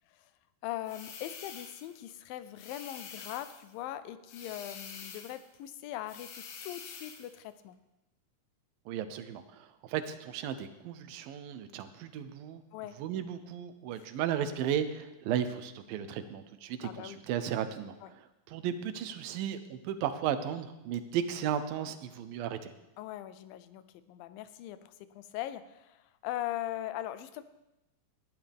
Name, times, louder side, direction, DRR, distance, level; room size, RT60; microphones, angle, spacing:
voice 1, 0.6-7.8 12.7-13.0 14.0-14.1 16.8-17.2 18.0-18.1 23.0-27.4, left 13 dB, 90° left, 13 dB, 2.4 m, -40 dB
sound 1, 0.8-2.0 2.6-3.7 4.3-5.5 6.1-7.3, left 6 dB, 60° left, 2.2 m, -47 dB
voice 2, 8.9-12.6 13.0-18.2 18.5-22.7, right 9 dB, 85° right, 10 dB, 2.6 m, -35 dB
18.5 x 12.0 x 3.5 m, 0.94 s
omnidirectional pair, 4.0 m